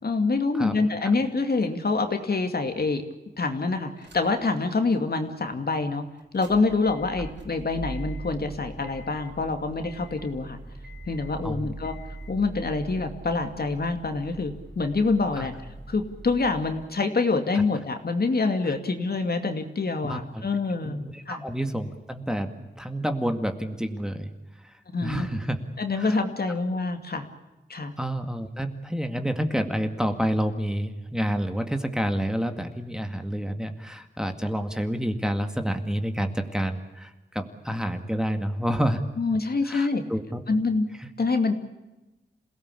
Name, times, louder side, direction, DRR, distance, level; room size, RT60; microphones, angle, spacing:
voice 1, 0.0-3.0 3.4-6.0 6.3-10.6 11.1-12.0 12.3-15.5 15.9-21.5 24.9-25.3 25.8-27.3 27.7-27.9 39.2-40.0 40.5-40.9 41.2-41.5, left 3 dB, 60° left, 6 dB, 2.5 m, -26 dB
sound 1, 4.0-4.5 4.9-5.0 6.2-16.8, right 2 dB, 80° right, 5.5 m, -41 dB
voice 2, 11.4-11.7 15.4-15.5 20.0-20.5 20.8-24.3 24.6-24.7 25.0-25.6 26.0-26.2 28.0-39.0 39.6-40.4 41.0-41.1, equal, 5° right, 6 dB, 2.1 m, -29 dB
27.5 x 17.5 x 8.5 m, 1.1 s
wide cardioid pair, 85°, 18 cm